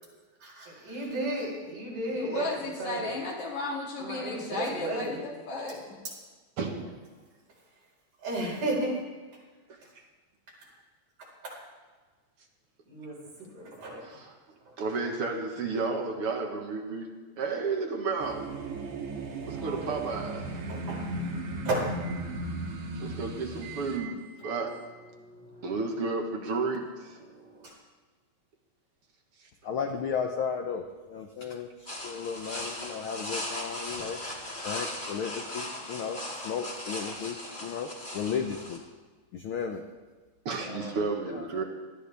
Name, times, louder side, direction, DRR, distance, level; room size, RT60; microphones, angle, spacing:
voice 1, 0.4-3.1 4.0-5.2 8.2-9.0 11.4-11.5 12.9-13.2 13.5-14.0 19.4-20.0 20.7-21.0 21.6-22.2 23.6-24.1 24.4-24.6 25.2-25.7 27.3-27.7, right 1 dB, 90° right, -4 dB, 6.0 m, -34 dB
voice 2, 2.1-6.0, left 2 dB, 70° left, -2 dB, 3.9 m, -35 dB
voice 3, 6.6-7.0 9.7-9.8 14.0-14.4 14.8-17.1 17.4-18.5 19.5-20.5 23.0-24.8 25.6-27.2 29.4-29.5 40.5-41.6, right 4 dB, 55° right, 3 dB, 2.0 m, -32 dB
sound 1, 18.2-24.0, right 2 dB, 70° right, 2.8 m, -36 dB
voice 4, 29.6-31.7 32.0-34.2 34.6-37.4 37.6-37.9 38.1-38.8 39.3-39.8 40.7-41.0 41.3-41.6, left 6 dB, 90° left, 4 dB, 1.1 m, -34 dB
sound 2, 31.9-38.8, left 1 dB, 20° left, 1.9 m, -38 dB
19.0 x 13.0 x 3.4 m, 1.4 s
omnidirectional pair, 3.4 m